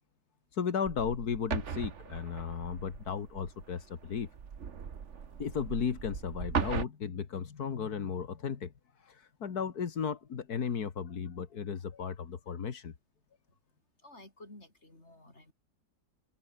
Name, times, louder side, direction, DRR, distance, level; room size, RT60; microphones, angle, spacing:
voice 1, 0.5-4.3 5.4-12.9, left 6 dB, 65° left, 2.2 m, -35 dB
sound 1, 0.8-6.9, right 7 dB, 45° right, 1.5 m, -38 dB
voice 2, 14.0-15.5, left 2 dB, 40° left, 6.2 m, -53 dB
open air
omnidirectional pair, 1.8 m